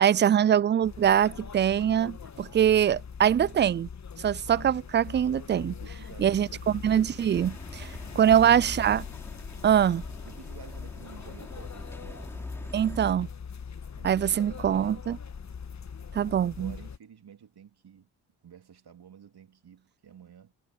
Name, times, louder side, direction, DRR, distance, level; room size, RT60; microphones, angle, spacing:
voice 1, 0.0-3.9 4.2-5.7 6.2-7.8 8.2-9.0 9.6-10.0 12.7-13.3 14.0-15.2 16.1-16.7, right 9 dB, 25° right, 0.3 m, -23 dB
sound 1, 0.8-17.0, left 6 dB, 35° left, 1.4 m, -42 dB
voice 2, 5.6-6.8 7.6-8.7 9.9-13.0 14.0-15.0 16.4-18.1 18.4-20.5, right 8 dB, 55° right, 3.3 m, -52 dB
sound 2, 7.3-13.1, left 1 dB, 5° left, 4.2 m, -44 dB
hypercardioid pair, 45°, 46 cm